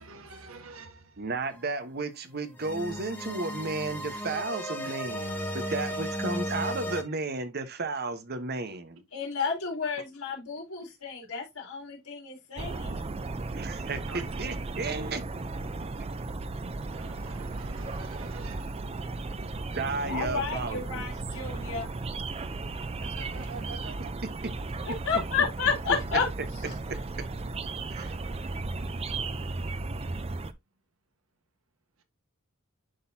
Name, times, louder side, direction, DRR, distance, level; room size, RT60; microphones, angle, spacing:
voice 1, 0.0-1.0 5.0-6.0 14.1-14.2 16.9-18.8 23.2-24.1, right 4 dB, 70° right, 1.3 m, -46 dB
voice 2, 1.2-9.0 13.5-15.2 19.7-21.0 24.2-24.5 26.9-27.0 27.9-28.1, right 3 dB, 45° right, 1.0 m, -33 dB
sound 1, 1.5-1.6 2.6-7.0, equal, 10° left, 1.3 m, -34 dB
voice 3, 9.1-13.1 20.1-21.9 24.8-26.3, left 5 dB, 80° left, 3.7 m, -31 dB
sound 2, 12.6-30.5, right 3 dB, 30° right, 0.5 m, -35 dB
11.0 x 3.9 x 2.7 m
head